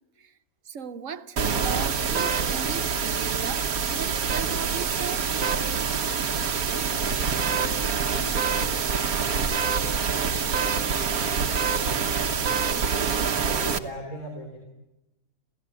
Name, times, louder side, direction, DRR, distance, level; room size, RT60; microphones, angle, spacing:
voice 1, 0.6-5.4, right 7 dB, 65° right, 1.5 m, -37 dB
sound 1, 1.4-13.8, right 6 dB, 90° right, 1.7 m, -26 dB
voice 2, 13.4-14.7, equal, 80° left, 4.2 m, -38 dB
28.5 x 16.0 x 9.0 m
omnidirectional pair, 1.5 m